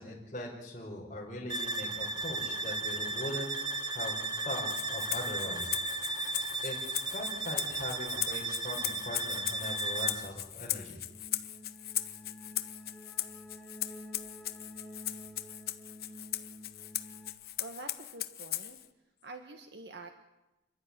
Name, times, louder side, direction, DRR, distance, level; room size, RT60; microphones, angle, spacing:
voice 1, 0.0-4.1 4.4-6.3 6.6-6.8 7.1-11.0, left 1 dB, 40° left, -6 dB, 5.0 m, -41 dB
sound 1, 1.5-10.3, right 2 dB, 25° right, 1.5 m, -35 dB
Rattle (instrument), 4.7-18.9, left 14 dB, 60° left, 1.1 m, -38 dB
sound 2, 11.1-17.3, equal, ahead, 2.0 m, -50 dB
voice 2, 17.6-18.8 19.2-20.1, right 3 dB, 75° right, 5 dB, 1.7 m, -46 dB
29.5 x 12.0 x 9.7 m, 0.99 s
head